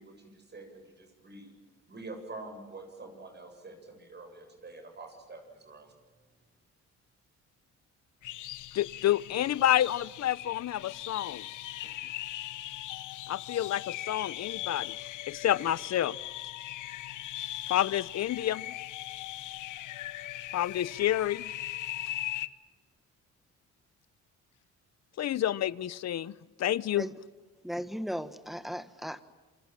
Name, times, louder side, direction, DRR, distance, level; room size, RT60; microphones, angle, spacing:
voice 1, 0.0-1.5 1.9-5.9, right 2 dB, 35° right, 4 dB, 7.9 m, -46 dB
sound 1, 8.2-22.5, left 14 dB, 80° left, 1.0 m, -39 dB
voice 2, 8.7-11.4 13.3-14.9 15.3-16.2 17.7-18.7 20.5-21.5 25.2-27.1, left 12 dB, 60° left, 20 dB, 0.8 m, -29 dB
voice 3, 27.6-29.2, equal, ahead, 12 dB, 1.5 m, -36 dB
28.0 x 25.0 x 7.5 m, 1.3 s
cardioid pair, 90°, 30 cm